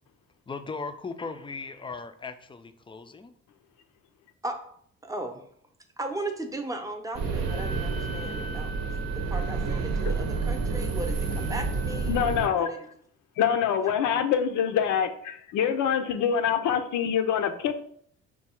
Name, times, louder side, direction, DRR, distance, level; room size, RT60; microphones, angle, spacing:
voice 1, 0.5-3.3, left 4 dB, 15° left, 9 dB, 0.4 m, -38 dB
voice 2, 5.0-5.4 6.0-8.7 9.3-12.2 12.6-12.9, right 2 dB, 10° right, 5 dB, 0.7 m, -36 dB
sound 1, 7.1-12.5, right 4 dB, 55° right, 0.7 m, -29 dB
Wind instrument woodwind instrument, 7.4-12.1, right 3 dB, 85° right, 1.0 m, -43 dB
voice 3, 12.1-12.7 13.4-17.7, left 8 dB, 85° left, 8 dB, 0.5 m, -25 dB
4.6 x 2.3 x 4.3 m, 0.64 s
cardioid pair, 90°, 30 cm